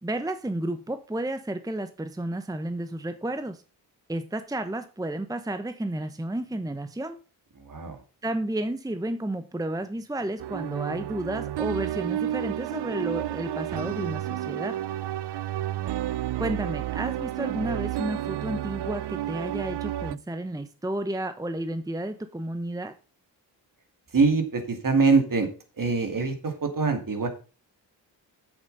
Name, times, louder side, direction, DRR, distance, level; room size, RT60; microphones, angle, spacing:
voice 1, 0.0-3.6 4.1-7.2 8.2-14.8 16.4-22.9, right 1 dB, 10° right, 9 dB, 0.8 m, -32 dB
voice 2, 7.7-8.0 24.1-25.5 25.8-27.3, right 4 dB, 50° right, 6 dB, 2.6 m, -23 dB
sound 1, 10.4-20.1, right 12 dB, 70° right, 0.6 m, -31 dB
8.1 x 7.2 x 5.4 m, 0.35 s
cardioid pair, 60°, 43 cm